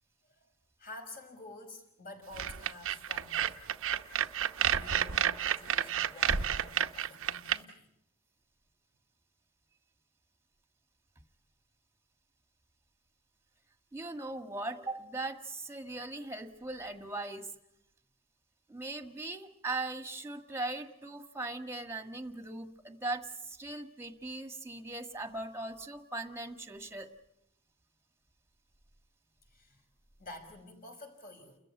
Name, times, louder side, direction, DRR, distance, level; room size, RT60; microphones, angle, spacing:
voice 1, 0.8-3.6 4.6-7.9 29.5-29.8 30.2-31.6, left 2 dB, 40° left, 3 dB, 5.5 m, -50 dB
sound 1, 2.3-7.6, right 9 dB, 65° right, 0.9 m, -30 dB
voice 2, 13.9-17.5 18.7-27.1, right 2 dB, 10° right, 8 dB, 1.7 m, -39 dB
30.0 x 14.5 x 9.6 m, 0.82 s
head